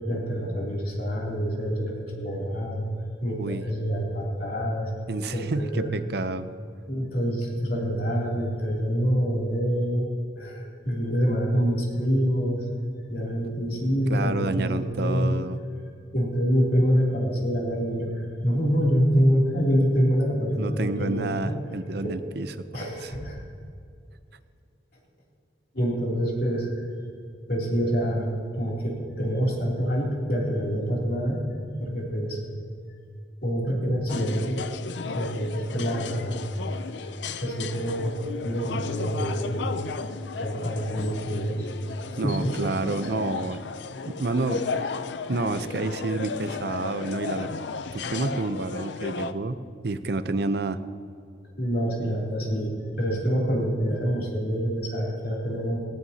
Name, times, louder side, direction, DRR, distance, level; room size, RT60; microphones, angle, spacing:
voice 1, 0.1-2.9 3.2-4.9 5.3-5.9 6.9-10.1 10.3-12.6 13.1-15.4 16.1-21.5 22.0-22.2 22.7-23.4 25.7-26.9 27.5-31.4 31.8-32.4 33.4-34.6 35.1-36.4 37.0-37.1 37.4-39.8 40.4-41.7 42.1-42.5 51.6-55.8, equal, 55° left, -3 dB, 3.0 m, -26 dB
voice 2, 5.1-6.5 14.1-15.6 20.6-22.5 22.8-23.1 42.2-43.6 44.1-44.6 45.3-47.5 47.9-50.8, right 2 dB, 60° right, 11 dB, 0.6 m, -29 dB
sound 1, 34.1-49.3, left 4 dB, 75° left, 0.6 m, -34 dB
18.5 x 15.5 x 2.9 m, 2.3 s
head